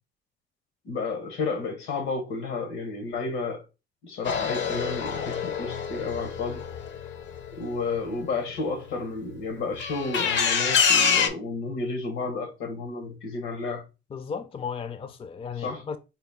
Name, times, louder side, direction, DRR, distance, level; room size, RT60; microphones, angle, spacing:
voice 1, 0.8-3.6 4.0-6.7 7.5-13.8 15.6-15.8, left 3 dB, 90° left, 1.1 m, -31 dB
sound 1, 4.2-8.0 9.8-11.3, left 6 dB, 70° left, 0.6 m, -26 dB
voice 2, 14.1-16.0, left 6 dB, 30° left, 0.4 m, -35 dB
4.1 x 2.2 x 3.3 m
cardioid pair, 90°, 20 cm